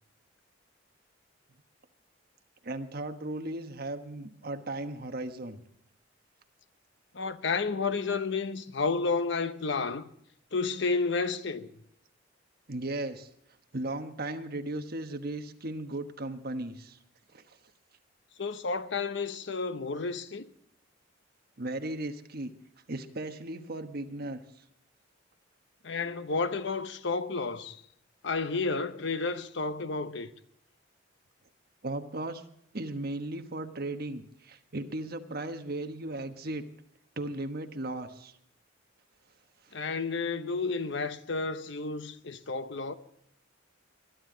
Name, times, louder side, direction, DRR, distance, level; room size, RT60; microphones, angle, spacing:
voice 1, 2.6-5.6 12.7-13.3 13.7-17.0 17.3-17.6 21.6-22.5 22.9-24.4 31.8-32.4 32.7-36.6 37.2-38.3, right 2 dB, 50° right, 1.2 m, -36 dB
voice 2, 7.1-10.1 10.5-11.7 18.4-20.5 25.8-27.8 28.2-30.3 39.7-42.9, left 4 dB, 65° left, 0.9 m, -31 dB
21.5 x 12.0 x 3.9 m
head